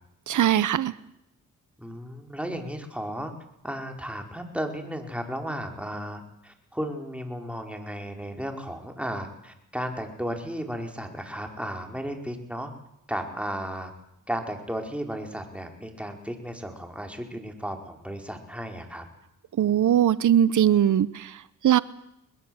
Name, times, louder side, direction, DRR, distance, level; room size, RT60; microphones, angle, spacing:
voice 1, 0.3-0.9 19.6-21.8, right 10 dB, 65° right, 17 dB, 0.9 m, -21 dB
voice 2, 1.8-3.3 3.6-12.7 13.1-13.9 14.3-19.0, equal, 5° right, 3 dB, 5.1 m, -34 dB
22.0 x 21.0 x 8.0 m, 0.82 s
cardioid pair, 55°, 33 cm